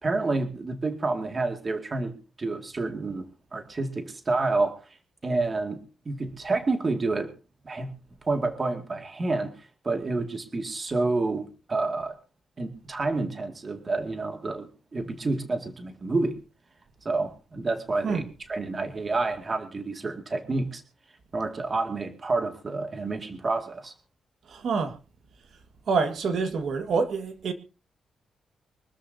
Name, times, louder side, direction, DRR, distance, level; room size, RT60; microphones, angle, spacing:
voice 1, 0.0-3.2 3.5-4.8 5.2-5.8 6.1-7.3 7.7-7.9 8.2-9.5 9.8-12.2 12.6-16.3 17.1-18.2 18.5-20.8 21.3-23.9, right 3 dB, 25° right, 2.1 m, -29 dB
voice 2, 24.5-25.0 25.9-27.5, right 4 dB, 60° right, 1.7 m, -26 dB
25.0 x 13.0 x 2.7 m
wide cardioid pair, 165°, 0 cm